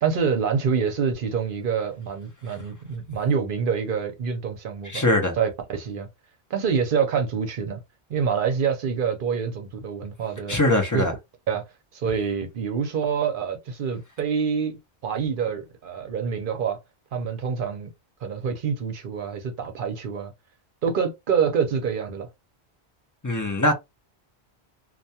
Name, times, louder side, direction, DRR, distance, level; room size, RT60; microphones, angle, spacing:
voice 1, 0.0-5.0 5.4-6.1 6.5-7.8 8.1-10.6 10.9-11.0 11.5-11.6 11.9-16.8 17.1-17.9 18.2-20.3 20.8-22.3, right 6 dB, 60° right, 0.7 m, -26 dB
voice 2, 4.9-5.3 10.5-11.1 23.2-23.7, left 1 dB, 30° left, 0.4 m, -21 dB
2.3 x 2.2 x 2.7 m
omnidirectional pair, 1.1 m